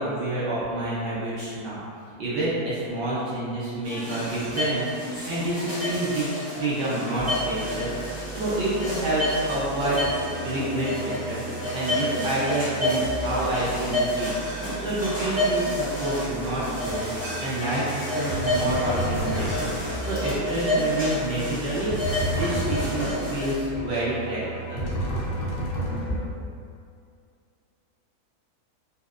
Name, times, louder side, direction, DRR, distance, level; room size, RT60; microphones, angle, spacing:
voice 1, 0.0-1.8 2.2-7.9 8.3-10.2 10.4-14.3 14.8-17.1 17.4-19.7 20.0-24.4 24.7-24.9, right 1 dB, 75° right, -10 dB, 0.4 m, -28 dB
sound 1, 3.8-23.5, left 1 dB, 10° right, 0.4 m, -30 dB
sound 2, 7.2-26.2, right 2 dB, 85° left, 0.3 m, -37 dB
sound 3, 17.2-17.5 18.3-19.9 21.9-23.2 24.8-26.3, equal, 70° left, 0.9 m, -30 dB
2.7 x 2.1 x 2.3 m, 2.3 s
omnidirectional pair, 1.6 m